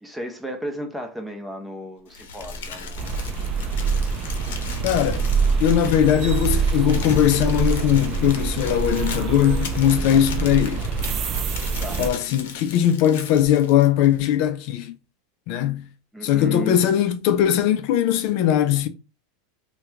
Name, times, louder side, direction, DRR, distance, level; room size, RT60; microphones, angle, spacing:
voice 1, 0.0-3.1 3.6-4.0 10.1-10.4 11.8-12.0 16.1-16.8, equal, 5° right, 0.8 m, -34 dB
Crumpling crinkling, 2.1-14.2, left 4 dB, 80° left, 0.7 m, -36 dB
sound 1, 2.4-9.0, equal, 25° left, 1.0 m, -40 dB
sound 2, 3.0-12.1, right 5 dB, 40° right, 0.4 m, -25 dB
voice 2, 4.8-5.3 5.6-10.8 12.0-14.9 15.5-15.9 16.2-18.9, left 10 dB, 60° left, 0.4 m, -20 dB
2.8 x 2.2 x 3.5 m
hypercardioid pair, 110°, 0 cm